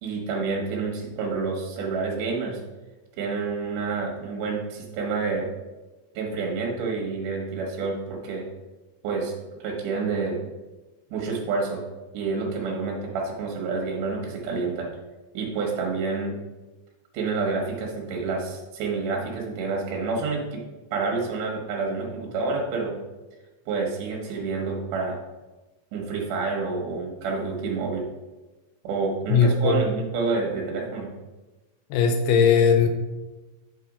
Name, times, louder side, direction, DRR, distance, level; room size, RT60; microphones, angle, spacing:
voice 1, 0.0-2.6 3.2-5.5 6.1-8.4 9.0-9.3 9.6-10.4 11.1-11.8 12.1-14.9 15.3-16.4 17.1-20.6 20.9-22.9 23.7-25.2 25.9-28.1 28.8-31.1, right 4 dB, 65° right, -1 dB, 2.8 m, -28 dB
voice 2, 29.3-29.9 31.9-32.9, left 6 dB, 85° left, 6 dB, 2.8 m, -19 dB
7.9 x 4.7 x 4.9 m, 1.1 s
omnidirectional pair, 4.4 m